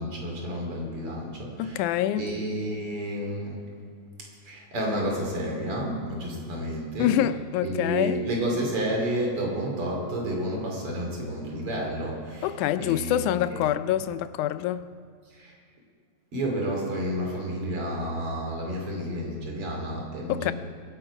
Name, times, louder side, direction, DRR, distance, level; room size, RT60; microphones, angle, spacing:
voice 1, 0.0-1.9 2.2-3.6 4.2-7.2 7.6-13.6 15.3-15.6 16.3-20.5, equal, 45° right, 3.5 m, -31 dB
voice 2, 1.6-2.2 7.0-8.2 12.4-14.9 20.3-20.5, left 12 dB, 85° left, 2.0 m, -26 dB
22.5 x 10.5 x 4.9 m
omnidirectional pair, 3.5 m